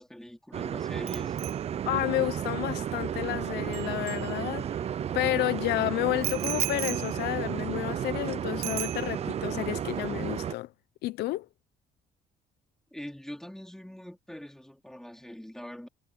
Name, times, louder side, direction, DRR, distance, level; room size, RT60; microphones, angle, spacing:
voice 1, 0.0-1.4 12.9-15.9, equal, 5° left, 4.1 m, -43 dB
sound 1, 0.5-10.5, right 9 dB, 40° right, 0.5 m, -33 dB
Bicycle bell, 1.1-4.9 6.2-8.3 8.6-9.5 9.8-10.1, right 15 dB, 80° right, 1.0 m, -38 dB
voice 2, 1.9-4.7 5.1-10.7 11.0-11.5, left 17 dB, 80° left, 0.7 m, -30 dB
cardioid pair, 110°, 17 cm